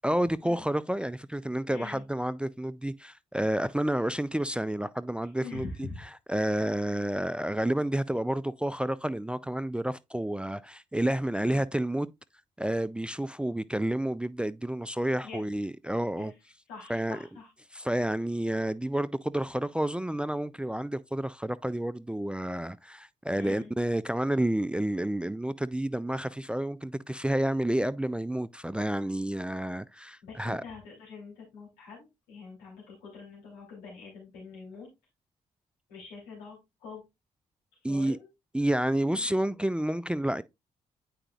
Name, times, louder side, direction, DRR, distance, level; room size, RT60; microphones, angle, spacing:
voice 1, 0.0-12.1 12.6-16.3 16.9-17.2 17.7-30.6 37.8-38.2 38.5-40.4, right 1 dB, 5° right, 0.3 m, -30 dB
voice 2, 1.7-2.0 5.4-6.0 11.4-11.6 15.2-15.4 16.2-16.3 16.7-17.5 23.4-23.7 30.2-34.9 35.9-37.0 37.8-38.3 39.1-39.3, left 4 dB, 85° left, 3.0 m, -44 dB
8.8 x 4.9 x 2.3 m
hypercardioid pair, 45°, 15 cm